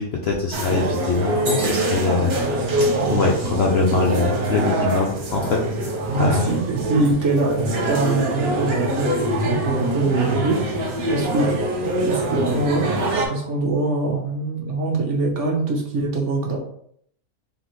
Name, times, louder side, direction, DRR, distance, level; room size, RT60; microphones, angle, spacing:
voice 1, 0.0-2.3 3.1-5.6 6.2-6.5, left 4 dB, 60° left, 0 dB, 0.7 m, -22 dB
sound 1, 0.5-13.3, right 1 dB, 75° right, 1.4 m, -24 dB
voice 2, 6.1-9.1 9.4-10.6 11.1-16.6, right 3 dB, 60° right, 0 dB, 1.1 m, -23 dB
3.9 x 3.5 x 3.0 m, 0.67 s
omnidirectional pair, 1.5 m